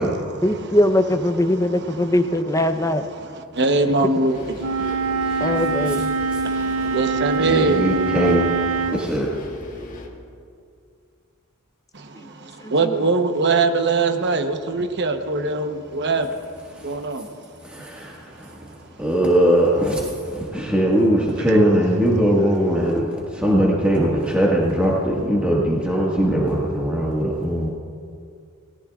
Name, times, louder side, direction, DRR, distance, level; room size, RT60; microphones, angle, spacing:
voice 1, 0.4-3.0 5.4-6.1 12.1-12.9, left 1 dB, 15° left, 0.7 m, -21 dB
voice 2, 3.1-4.9 6.4-7.9 11.9-16.3 16.8-17.3 21.5-21.6, right 3 dB, 50° right, 1.0 m, -22 dB
sound 1, 4.3-10.1, left 1 dB, 40° left, 1.9 m, -38 dB
Wind instrument woodwind instrument, 4.6-9.0, right 4 dB, 85° right, 0.5 m, -24 dB
voice 3, 5.2-5.9 7.4-8.4 8.9-9.3 16.7-16.9 17.6-18.7 19.0-27.7, right 1 dB, 5° right, 1.7 m, -20 dB
28.5 x 18.5 x 2.4 m
head